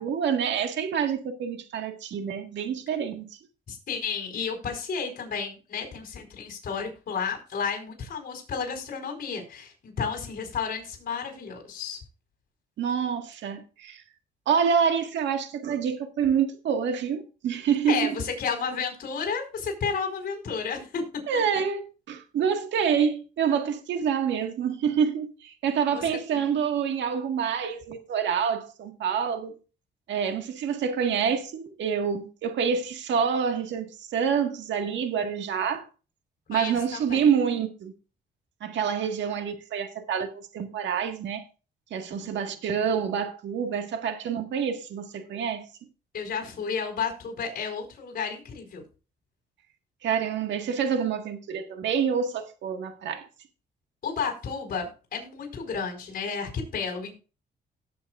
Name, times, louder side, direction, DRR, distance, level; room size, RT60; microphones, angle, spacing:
voice 1, 0.0-3.3 12.8-14.0 14.5-18.1 21.3-21.8 22.1-29.5 30.1-35.9 36.5-37.9 38.6-41.4 41.9-45.7 50.0-53.3, right 7 dB, 85° right, 1.7 m, -27 dB
voice 2, 3.7-12.0 17.9-21.0 25.9-26.1 36.5-37.2 42.1-42.3 46.1-48.8 54.0-57.1, left 6 dB, 55° left, 4.6 m, -32 dB
18.0 x 8.0 x 2.5 m
cardioid pair, 110°, 18 cm